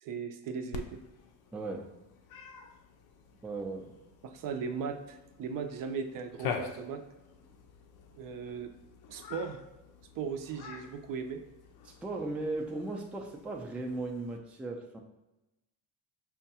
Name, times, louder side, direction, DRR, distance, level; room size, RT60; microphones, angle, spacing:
voice 1, 0.0-1.0 4.2-7.0 8.1-8.7 9.1-9.6 10.2-11.4, right 6 dB, 60° right, 7 dB, 0.5 m, -37 dB
Cat, 0.7-14.4, left 5 dB, 70° left, 0.6 m, -46 dB
voice 2, 1.5-1.9 3.4-3.9 11.8-15.0, right 2 dB, 5° right, 1 dB, 0.3 m, -37 dB
5.6 x 2.2 x 2.8 m, 0.99 s
cardioid pair, 110°, 38 cm